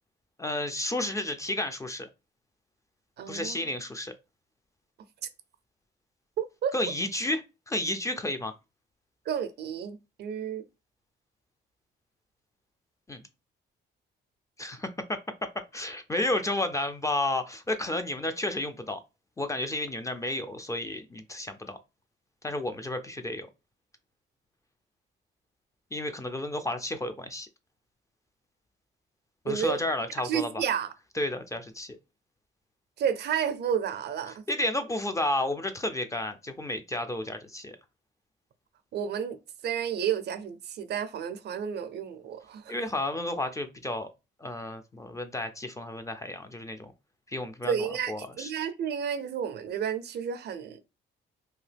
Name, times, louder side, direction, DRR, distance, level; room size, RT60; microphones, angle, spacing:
voice 1, 0.4-2.1 3.3-4.1 6.7-8.5 13.1-13.2 14.6-15.2 15.7-19.0 19.4-21.8 22.4-23.5 25.9-27.5 29.4-30.6 31.2-32.0 34.5-37.8 42.7-44.1 44.4-46.9 47.3-48.5, left 1 dB, 15° left, 0.4 m, -32 dB
voice 2, 3.2-3.6 6.4-6.7 9.3-10.6 29.5-29.8 30.2-30.9 33.0-34.4 38.9-39.4 39.6-42.7 47.6-50.8, right 8 dB, 55° right, 0.4 m, -31 dB
2.8 x 2.2 x 3.3 m
cardioid pair, 90°, 20 cm